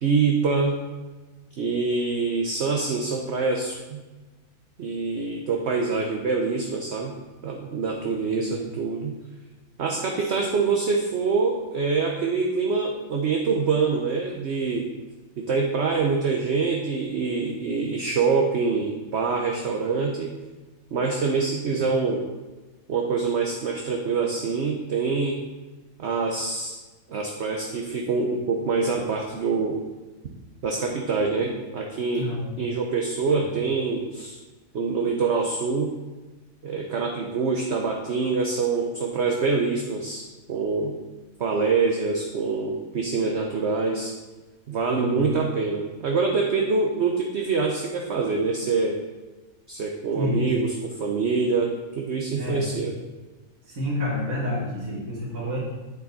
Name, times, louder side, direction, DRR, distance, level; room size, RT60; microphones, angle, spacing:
voice 1, 0.0-0.8 1.6-4.0 4.8-7.1 7.4-9.2 9.8-14.9 15.4-20.3 20.9-22.2 22.9-25.4 26.0-26.7 27.1-29.8 30.6-32.3 32.6-34.4 34.7-35.9 36.6-41.0 41.4-44.1 44.7-49.0 49.7-52.9, right 4 dB, 55° right, 1 dB, 1.0 m, -25 dB
voice 2, 8.3-8.7 10.2-10.3 32.1-32.6 33.3-33.5 44.9-45.3 50.1-50.5 52.3-52.7 53.6-55.6, left 1 dB, 85° right, -8 dB, 2.6 m, -29 dB
9.0 x 6.7 x 4.0 m, 1.2 s
omnidirectional pair, 1.5 m